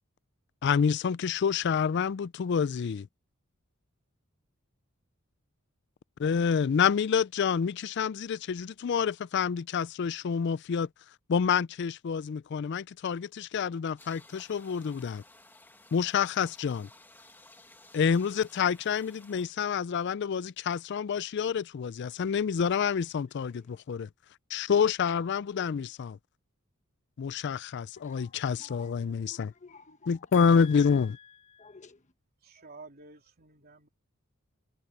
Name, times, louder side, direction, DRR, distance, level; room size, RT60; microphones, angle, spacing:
voice 1, 0.6-3.1 6.2-10.9 11.3-15.2 15.9-16.9 17.9-24.1 24.5-26.2 27.2-29.5 30.1-31.2, left 6 dB, 55° left, 0.4 m, -28 dB
sound 1, 14.0-19.5, left 2 dB, 10° left, 2.0 m, -56 dB
voice 2, 23.5-23.8 28.0-32.1, left 7 dB, 35° left, 1.2 m, -50 dB
voice 3, 32.4-33.9, right 3 dB, 45° right, 3.4 m, -51 dB
head